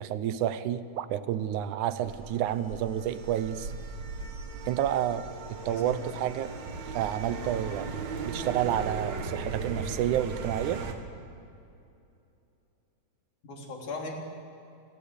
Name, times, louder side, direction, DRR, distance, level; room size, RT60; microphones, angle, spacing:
voice 1, 0.0-3.7 4.7-5.3 5.7-6.5 6.9-10.8, right 11 dB, 85° right, 14 dB, 2.4 m, -30 dB
sound 1, 2.0-10.9, right 4 dB, 65° right, 3.0 m, -37 dB
voice 2, 5.6-6.2 13.4-14.1, left 3 dB, 80° left, 1 dB, 5.0 m, -38 dB
29.0 x 20.0 x 8.5 m, 2.7 s
omnidirectional pair, 3.4 m